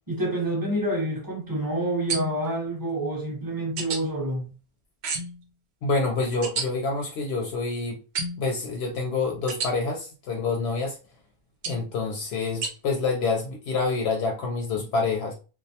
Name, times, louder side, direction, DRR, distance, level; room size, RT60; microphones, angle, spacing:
voice 1, 0.1-4.4, right 1 dB, 20° right, 0.9 m, -28 dB
sound 1, 2.1-2.5 3.8-4.0 5.0-5.4 6.4-6.7 8.2-8.5 9.5-9.7 11.6-11.9 12.6-12.7, right 4 dB, 85° right, 0.9 m, -30 dB
voice 2, 5.8-8.0 8.4-11.0 11.7-15.3, left 3 dB, 80° left, 0.8 m, -27 dB
2.3 x 2.1 x 2.7 m
omnidirectional pair, 1.1 m